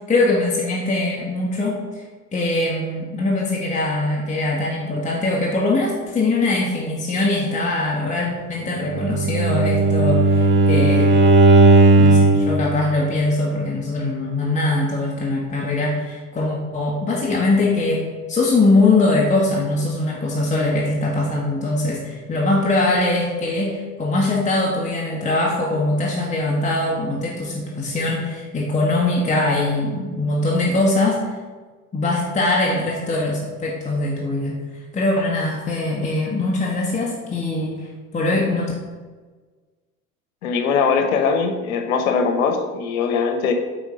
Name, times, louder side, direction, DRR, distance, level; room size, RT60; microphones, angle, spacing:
voice 1, 0.1-2.0 2.3-11.1 11.9-31.2 31.9-34.6 34.9-37.9 38.1-38.7, left 2 dB, 15° left, -3 dB, 1.4 m, -22 dB
Bowed string instrument, 8.9-12.5, right 2 dB, 25° right, 1.0 m, -14 dB
voice 2, 40.4-43.5, left 5 dB, 65° left, 6 dB, 1.2 m, -21 dB
8.6 x 4.5 x 5.3 m, 1.4 s
figure-of-eight pair, 70°, 45 cm